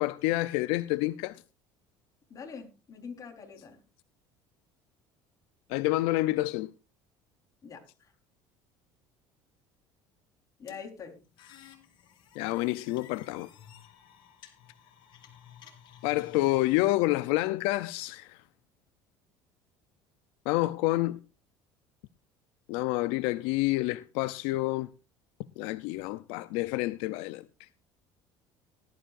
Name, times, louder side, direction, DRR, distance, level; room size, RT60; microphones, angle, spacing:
voice 1, 0.0-1.4 5.7-6.7 12.4-13.5 16.0-18.4 20.5-21.2 22.7-24.9 25.6-27.4, left 19 dB, 80° left, 0.6 m, -28 dB
voice 2, 2.3-3.8 7.6-7.8 10.6-11.2, left 6 dB, 35° left, 4.2 m, -44 dB
sound 1, 10.7-16.7, left 9 dB, 55° left, 3.5 m, -54 dB
19.0 x 12.5 x 2.6 m
supercardioid pair, 110°, 10 cm